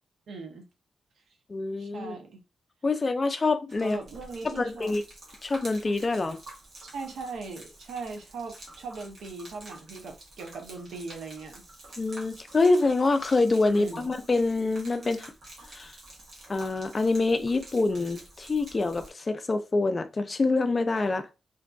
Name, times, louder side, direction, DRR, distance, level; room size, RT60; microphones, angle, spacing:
voice 1, 0.3-0.7 1.8-2.4 3.8-4.9 6.8-11.6 13.7-14.1, right 4 dB, 90° right, 0.6 m, -39 dB
voice 2, 1.5-2.1 2.8-4.0 4.4-5.0 5.4-6.4 12.0-15.3 15.7-15.9 16.5-21.3, left 3 dB, 30° left, 0.3 m, -26 dB
Gurgling / Liquid, 3.7-19.1, right 1 dB, 50° right, 0.9 m, -49 dB
2.5 x 2.5 x 2.2 m
wide cardioid pair, 150°, 0 cm